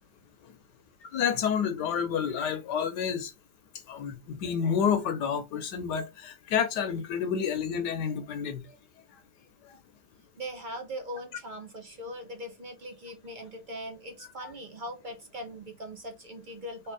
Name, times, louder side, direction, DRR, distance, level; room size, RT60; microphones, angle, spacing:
voice 1, 1.0-3.3 3.9-8.6 14.4-14.5, left 7 dB, 75° left, 1.3 m, -29 dB
voice 2, 10.4-16.9, equal, 55° right, 0.5 m, -40 dB
3.4 x 3.1 x 4.6 m
omnidirectional pair, 1.9 m